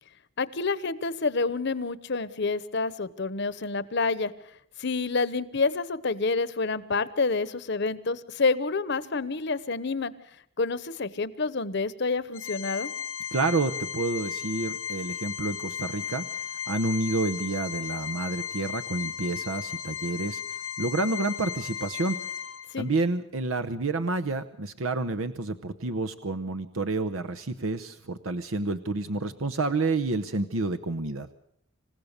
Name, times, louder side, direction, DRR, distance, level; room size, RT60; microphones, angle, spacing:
voice 1, 0.4-4.3 4.8-10.1 10.6-12.9 22.7-22.9, left 4 dB, 60° left, 16 dB, 1.0 m, -28 dB
Organ, 12.3-22.9, left 8 dB, 85° left, 1.3 m, -35 dB
voice 2, 13.3-16.3 16.7-20.4 20.8-22.2 22.8-31.3, right 3 dB, 85° right, 9 dB, 0.9 m, -29 dB
27.5 x 16.0 x 6.7 m, 0.71 s
head